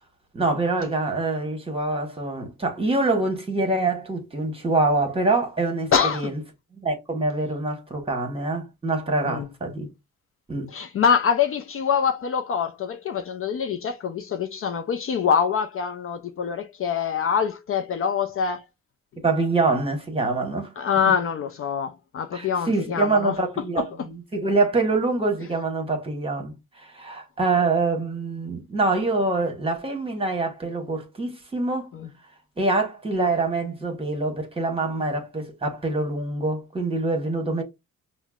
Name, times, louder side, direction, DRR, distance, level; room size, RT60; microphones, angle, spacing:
voice 1, 0.3-6.4 6.8-9.9 10.5-10.7 19.2-20.7 21.0-21.1 22.3-31.9 32.6-37.6, right 3 dB, 20° right, 1.2 m, -25 dB
voice 2, 5.9-6.3 9.3-9.5 10.7-18.6 20.8-23.3 23.7-23.8 31.9-32.1, left 7 dB, 45° left, 0.5 m, -24 dB
5.6 x 2.1 x 2.3 m
cardioid pair, 90°, 30 cm